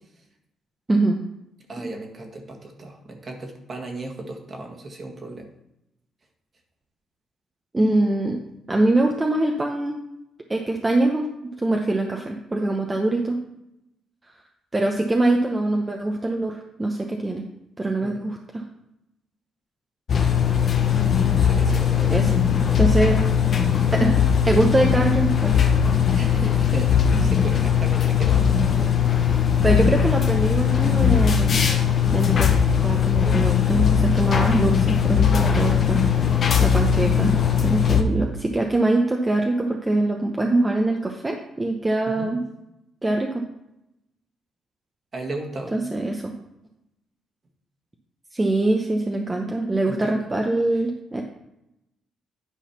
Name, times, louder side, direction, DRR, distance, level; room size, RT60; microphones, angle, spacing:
voice 1, 1.7-5.5 18.0-18.2 21.2-22.3 26.1-28.5 42.2-42.3 45.1-45.7 49.9-50.2, right 2 dB, 40° right, 2 dB, 1.7 m, -35 dB
voice 2, 7.7-8.4 8.7-10.0 10.5-13.4 14.7-17.4 17.8-18.6 22.1-22.4 22.8-23.2 24.0-25.6 29.6-31.6 32.1-32.5 32.8-36.0 36.6-42.4 43.0-43.5 45.7-46.3 48.3-51.2, right 2 dB, 20° right, 1 dB, 0.9 m, -23 dB
sound 1, 20.1-38.0, left 8 dB, 50° left, 1.0 m, -19 dB
10.0 x 4.0 x 5.8 m, 0.86 s
cardioid pair, 90°, 0 cm